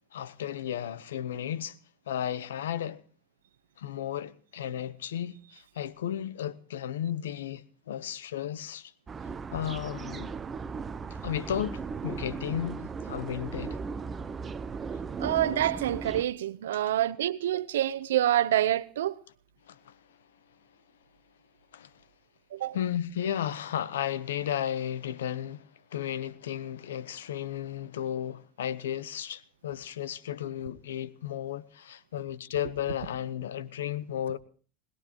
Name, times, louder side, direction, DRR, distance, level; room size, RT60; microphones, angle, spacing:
voice 1, 0.1-1.8 2.1-3.0 3.8-8.9 9.5-10.3 11.1-13.8 19.7-20.0 21.7-21.9 22.7-34.4, left 10 dB, 90° left, 0.9 m, -34 dB
sound 1, 9.1-16.2, right 5 dB, 25° right, 0.8 m, -37 dB
voice 2, 15.2-19.1 22.5-22.8, right 12 dB, 85° right, 0.8 m, -27 dB
21.0 x 19.5 x 3.0 m
hypercardioid pair, 100°, 0 cm